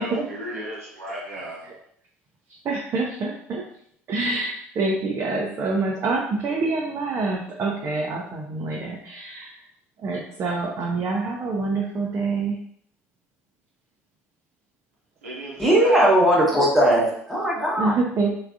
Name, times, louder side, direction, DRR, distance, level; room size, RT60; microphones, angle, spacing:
voice 1, 0.0-1.6 15.2-16.1, right 1 dB, 80° right, -4 dB, 0.8 m, -33 dB
voice 2, 2.6-3.6 4.1-9.5 10.0-12.6 17.8-18.3, right 3 dB, 40° right, -1 dB, 0.5 m, -26 dB
voice 3, 15.6-17.9, right 1 dB, ahead, -5 dB, 1.0 m, -19 dB
3.3 x 2.4 x 2.4 m, 0.67 s
figure-of-eight pair, 60°, 7 cm